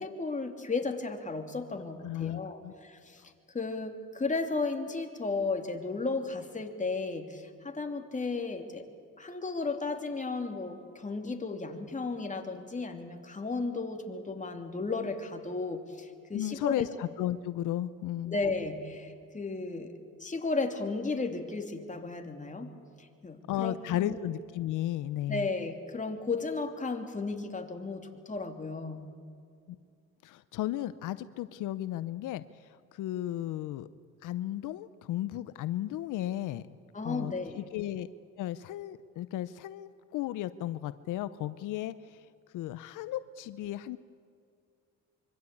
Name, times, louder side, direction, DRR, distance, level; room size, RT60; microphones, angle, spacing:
voice 1, 0.0-3.2 3.5-8.8 9.2-16.9 18.3-19.9 20.2-22.7 23.0-24.2 25.3-29.1 36.9-37.6, left 3 dB, 25° left, 4 dB, 3.1 m, -34 dB
voice 2, 2.0-2.7 16.3-18.4 23.5-25.5 29.7-29.8 30.2-33.9 34.2-36.8 37.0-38.1 38.4-42.3 42.5-44.0, left 13 dB, 85° left, 14 dB, 0.8 m, -34 dB
25.5 x 24.0 x 8.5 m, 2.3 s
cardioid pair, 90°, 30 cm